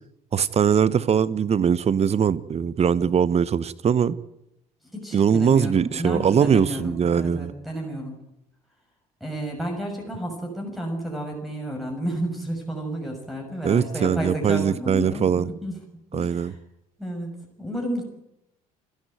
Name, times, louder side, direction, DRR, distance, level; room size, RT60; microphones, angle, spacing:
voice 1, 0.3-4.2 5.1-7.5 13.6-15.5 16.1-16.5, right 7 dB, 35° right, 0.9 m, -21 dB
voice 2, 4.8-8.2 9.2-15.8 16.1-16.6 17.0-18.0, right 1 dB, ahead, 6.6 m, -31 dB
29.0 x 10.5 x 9.2 m
figure-of-eight pair, 55°, 19 cm